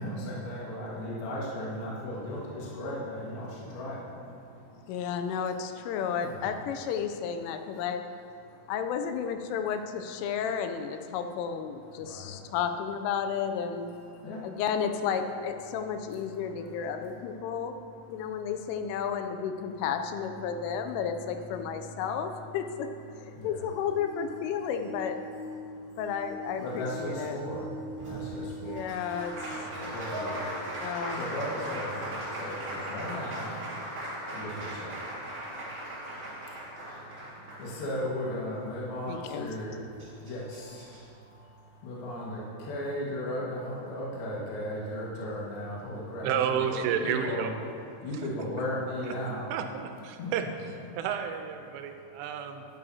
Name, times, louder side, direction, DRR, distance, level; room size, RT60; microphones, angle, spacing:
voice 1, 0.0-5.0 5.3-6.5 8.5-8.7 10.2-10.4 11.9-12.5 14.1-14.5 16.5-16.9 17.4-17.6 21.7-22.0 23.4-23.6 25.7-26.0 26.6-28.8 29.3-34.9 35.2-46.8 47.0-47.5 48.0-49.5 50.2-50.3, left 1 dB, 60° left, -6 dB, 3.2 m, -37 dB
voice 2, 4.9-8.0 8.7-13.9 14.4-17.8 18.1-22.9 23.2-25.2 26.0-27.4 28.6-29.3 30.8-31.2 39.1-39.5, left 7 dB, 85° left, 7 dB, 3.1 m, -32 dB
sound 1, 23.3-31.0 31.7-31.8 32.8-32.9, equal, 35° left, 2.6 m, -43 dB
Applause, 28.0-38.2 39.6-39.7 40.0-41.0, right 1 dB, 60° right, 1.0 m, -38 dB
voice 3, 46.2-47.5 48.1-48.3 49.0-49.2 49.5-50.4 50.7-52.7, right 8 dB, 90° right, 6 dB, 3.2 m, -31 dB
11.5 x 10.5 x 2.8 m, 2.4 s
omnidirectional pair, 5.6 m